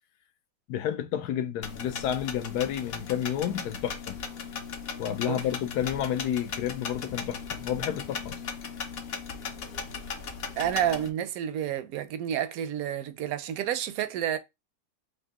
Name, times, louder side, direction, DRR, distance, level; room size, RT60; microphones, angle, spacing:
voice 1, 0.7-4.2 5.0-8.4, left 10 dB, 80° left, 1.2 m, -30 dB
sound 1, 1.6-11.1, left 5 dB, 55° left, 0.7 m, -37 dB
voice 2, 10.6-14.4, right 10 dB, 70° right, 1.0 m, -29 dB
3.9 x 2.6 x 3.5 m
omnidirectional pair, 1.7 m